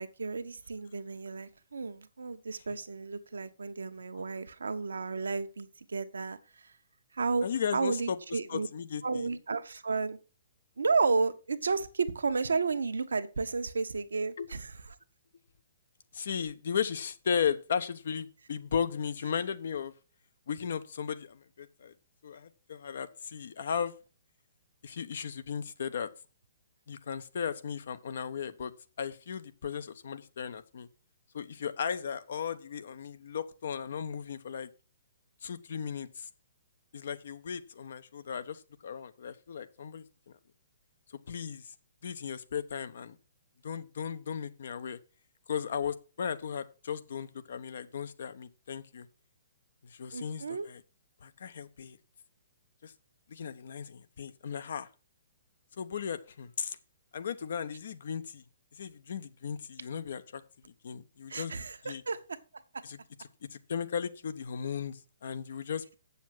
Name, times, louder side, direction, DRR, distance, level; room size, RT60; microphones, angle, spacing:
voice 1, 0.0-6.4 7.1-8.7 9.0-10.2 10.8-14.7 50.1-50.7 61.3-62.4, right 4 dB, 75° right, 1.1 m, -32 dB
voice 2, 7.4-8.2 8.5-9.3 14.4-14.5 16.1-19.9 20.5-21.9 22.2-23.9 24.8-26.1 26.9-28.7 29.0-30.9 31.3-34.7 35.4-36.3 36.9-40.0 41.3-41.6 42.0-43.2 43.6-45.0 45.5-49.1 49.8-50.8 51.2-52.0 52.8-52.9 53.3-54.9 55.8-56.8 57.1-58.4 58.8-60.4 60.8-61.5 61.8-62.0 62.8-63.0 63.5-65.9, left 7 dB, 60° left, 1.0 m, -36 dB
8.2 x 7.1 x 6.1 m
figure-of-eight pair, 125°, 0 cm